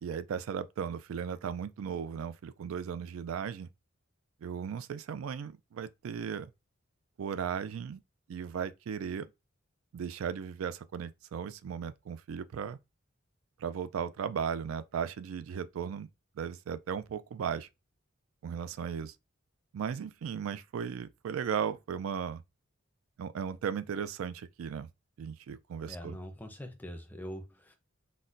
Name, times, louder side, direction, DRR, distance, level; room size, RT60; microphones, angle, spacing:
voice 1, 0.0-3.7 4.4-6.5 7.2-8.0 8.3-9.3 9.9-12.8 13.6-16.1 16.4-17.7 18.4-19.1 19.7-22.4 23.2-24.9 25.2-26.1, right 7 dB, 85° right, 0.3 m, -36 dB
voice 2, 25.9-27.8, equal, 10° left, 0.5 m, -43 dB
4.0 x 2.1 x 2.5 m
head